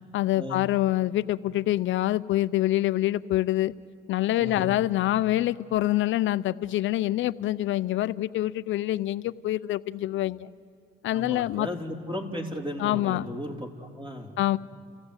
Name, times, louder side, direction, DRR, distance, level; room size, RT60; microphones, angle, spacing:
voice 1, 0.1-3.7 4.1-10.5 11.0-11.7 12.8-13.3 14.4-14.6, left 15 dB, 75° left, 17 dB, 0.5 m, -26 dB
voice 2, 4.4-4.8 11.1-14.4, equal, 25° right, 2 dB, 3.6 m, -35 dB
29.5 x 15.5 x 8.0 m, 2.6 s
cardioid pair, 90°, 20 cm